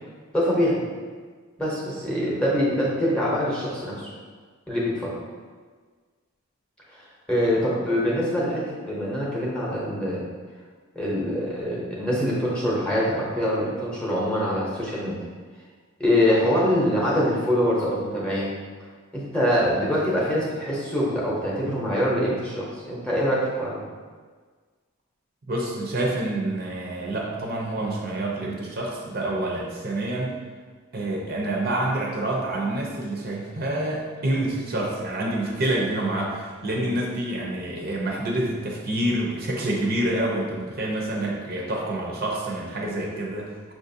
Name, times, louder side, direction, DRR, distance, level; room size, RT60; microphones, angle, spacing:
voice 1, 0.3-0.8 1.6-4.1 4.7-5.1 6.9-10.2 10.9-15.2 16.0-18.5 19.1-23.8 36.7-36.8, equal, 5° left, -6 dB, 0.8 m, -24 dB
voice 2, 25.5-30.4 30.9-43.7, right 1 dB, 45° right, -2 dB, 0.6 m, -27 dB
5.6 x 2.5 x 2.7 m, 1.5 s
head